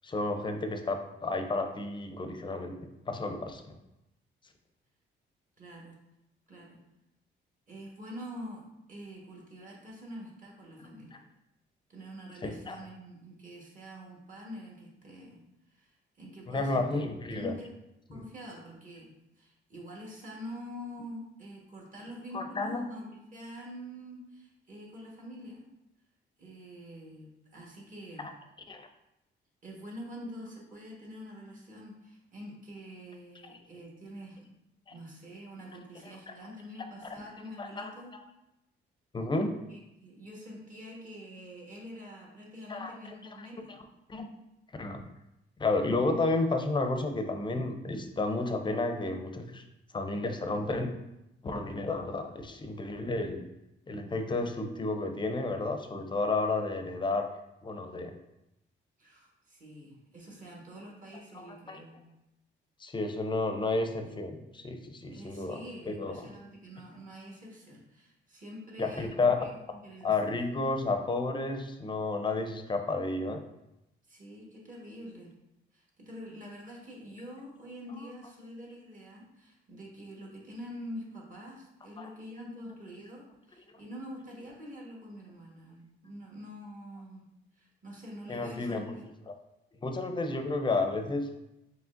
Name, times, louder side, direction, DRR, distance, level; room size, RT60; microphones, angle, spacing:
voice 1, 0.0-2.8 3.1-3.6 12.4-12.8 16.5-17.5 22.3-22.8 28.7-28.8 37.6-37.9 39.1-39.6 42.7-42.9 44.1-44.3 44.8-45.0 45.6-49.6 49.9-50.9 51.4-53.4 53.9-57.3 57.6-58.1 61.3-61.8 62.8-65.6 65.9-66.3 68.8-69.3 70.0-73.4 82.0-82.1 88.3-88.8 89.3-89.4 89.8-91.3, left 3 dB, 25° left, 6 dB, 0.5 m, -31 dB
voice 2, 5.6-6.0 6.5-6.8 7.7-11.2 11.9-15.4 15.7-17.0 17.3-17.7 18.1-25.7 26.4-28.3 29.6-34.5 34.9-38.1 39.7-43.7 59.0-62.0 64.0-64.2 65.1-69.5 69.7-70.4 74.1-75.3 75.7-87.3 87.6-89.0, equal, 40° right, -2 dB, 1.4 m, -46 dB
4.9 x 3.2 x 2.5 m, 0.89 s
cardioid pair, 90°, 20 cm